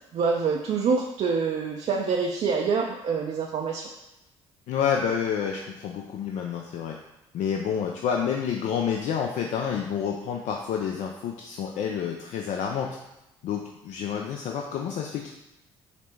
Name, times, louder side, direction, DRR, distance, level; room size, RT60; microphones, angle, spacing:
voice 1, 0.1-3.9, right 5 dB, 45° right, 0 dB, 0.4 m, -26 dB
voice 2, 4.7-6.9 7.3-12.9 13.4-15.3, left 7 dB, 55° left, 1 dB, 0.4 m, -29 dB
5.0 x 2.0 x 3.3 m, 0.93 s
hypercardioid pair, 50°, 14 cm